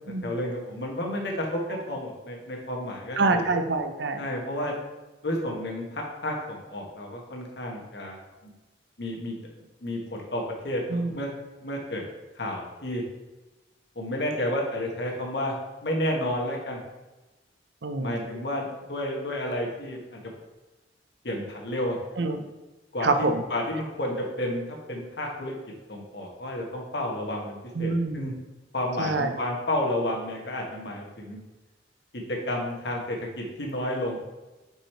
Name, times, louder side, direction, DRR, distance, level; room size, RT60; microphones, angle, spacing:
voice 1, 0.2-1.6 1.9-3.4 4.2-4.7 5.2-8.2 9.0-11.3 11.6-12.0 12.4-13.0 13.9-15.5 15.8-16.8 18.0-20.2 21.2-22.0 22.9-23.1 23.5-25.5 25.9-28.3 28.7-31.4 32.1-34.2, left 1 dB, 65° left, -1 dB, 1.4 m, -31 dB
voice 2, 3.2-4.2 10.9-11.2 17.8-18.3 22.2-22.4 23.0-23.4 27.7-28.4 29.0-29.4, right 3 dB, 75° right, 7 dB, 0.7 m, -26 dB
5.4 x 4.8 x 4.4 m, 1.1 s
head